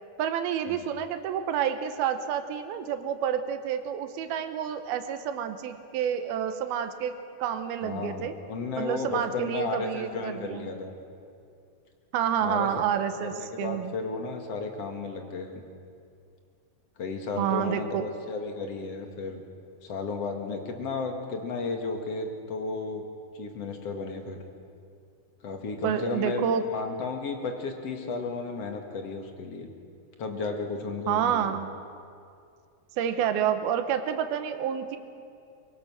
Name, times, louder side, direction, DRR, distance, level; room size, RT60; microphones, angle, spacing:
voice 1, 0.2-8.3 8.8-10.7 12.1-13.9 17.4-18.1 25.8-26.6 31.1-31.7 33.0-35.0, right 9 dB, 85° right, 8 dB, 2.8 m, -29 dB
voice 2, 7.8-10.9 12.4-12.7 13.2-15.6 17.0-19.4 19.8-23.0 23.3-24.4 25.4-29.7 30.2-31.5, left 4 dB, 50° left, 4 dB, 2.5 m, -33 dB
23.5 x 23.0 x 6.3 m, 2.4 s
omnidirectional pair, 4.4 m